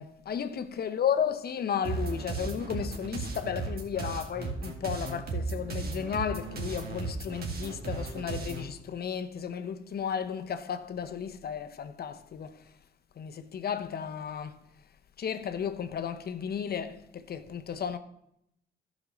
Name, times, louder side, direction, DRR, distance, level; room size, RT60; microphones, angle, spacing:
voice 1, 0.0-12.6 13.2-14.6 15.2-18.0, left 8 dB, 50° left, 0.8 m, -34 dB
sound 1, 1.8-8.7, right 3 dB, 50° right, 2.0 m, -35 dB
11.5 x 5.2 x 6.3 m
cardioid pair, 90°, 20 cm